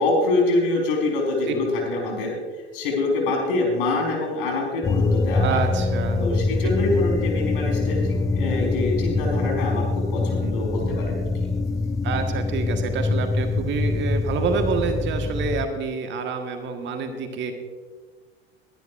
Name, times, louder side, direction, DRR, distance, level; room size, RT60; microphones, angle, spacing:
voice 1, 0.0-2.3 2.7-5.6 6.2-11.5, left 2 dB, 60° left, -1 dB, 4.5 m, -25 dB
sound 1, 4.8-15.6, left 3 dB, 10° left, 0.5 m, -24 dB
voice 2, 5.4-6.2 6.6-6.7 10.4-10.5 12.0-17.5, right 5 dB, 40° right, 5 dB, 1.5 m, -27 dB
22.0 x 10.5 x 2.6 m, 1.4 s
figure-of-eight pair, 70°, 30 cm